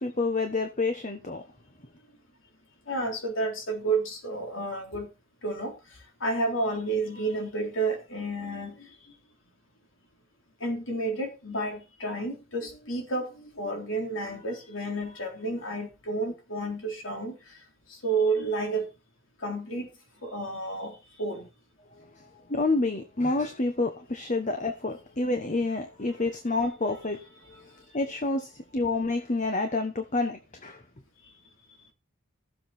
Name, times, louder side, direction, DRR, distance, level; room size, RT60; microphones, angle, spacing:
voice 1, 0.0-1.4 21.9-27.7 27.9-30.8, left 3 dB, 35° left, 1.2 m, -29 dB
voice 2, 2.9-5.1 5.4-5.7 6.2-9.2 10.6-17.6 17.9-18.9 19.4-19.9 20.2-21.5, right 2 dB, 70° left, 3.7 m, -31 dB
14.5 x 7.6 x 4.4 m
head